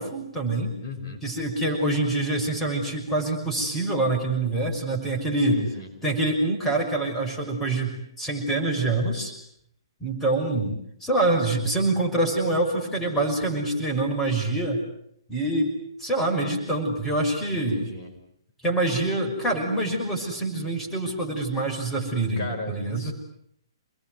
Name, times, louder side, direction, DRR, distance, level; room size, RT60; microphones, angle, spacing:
voice 1, 0.0-0.8 1.2-5.6 6.0-9.3 10.0-10.7 11.0-14.8 15.3-15.7 16.0-17.8 18.6-23.1, right 2 dB, 10° left, 1 dB, 6.2 m, -25 dB
voice 2, 0.8-1.2 5.5-5.9 17.5-18.1 22.4-23.1, left 2 dB, 35° left, 1 dB, 5.7 m, -35 dB
28.5 x 21.0 x 9.6 m, 0.71 s
figure-of-eight pair, 125°, 2 cm